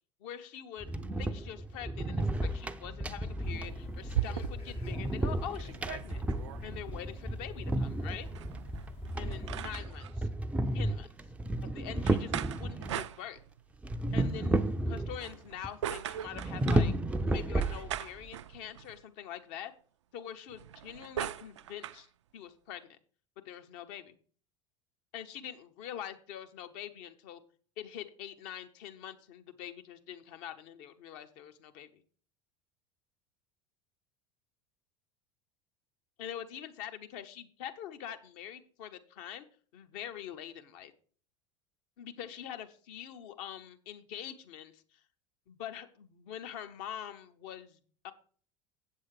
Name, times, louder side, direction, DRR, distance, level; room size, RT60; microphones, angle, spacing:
voice 1, 0.2-0.9 1.2-6.2 6.6-8.3 9.2-10.3 10.7-11.1 11.6-13.4 14.1-16.9 17.3-19.7 20.1-22.1 22.3-23.0 23.4-24.2 25.1-27.4 27.8-32.0 36.2-39.5 39.7-40.9 42.0-45.0 45.5-47.8 48.0-48.1, left 10 dB, 50° left, 8 dB, 0.9 m, -44 dB
sound 1, 0.8-13.0 13.8-15.3 15.6-15.7 16.3-18.2, right 1 dB, 10° right, 0.5 m, -33 dB
sound 2, 3.3-4.8 5.3-5.4 5.5-6.6 8.3-10.1 12.1-13.7 15.1-16.9 17.6-19.0 20.5-22.0, right 11 dB, 65° right, 0.4 m, -40 dB
sound 3, 3.4-9.7, left 9 dB, 35° left, 0.6 m, -52 dB
7.9 x 7.5 x 4.8 m, 0.44 s
figure-of-eight pair, 75°, 16 cm